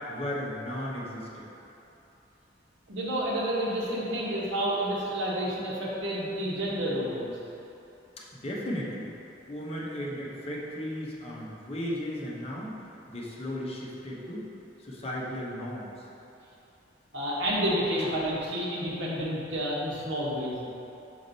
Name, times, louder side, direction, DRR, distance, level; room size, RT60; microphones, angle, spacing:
voice 1, 0.1-1.5 8.3-9.1 9.5-12.8 13.1-14.5 14.8-15.9 18.0-18.1, equal, 35° left, -5 dB, 0.9 m, -35 dB
voice 2, 2.9-7.3 17.1-20.6, equal, 80° right, -6 dB, 1.4 m, -30 dB
5.4 x 4.8 x 4.1 m, 2.9 s
head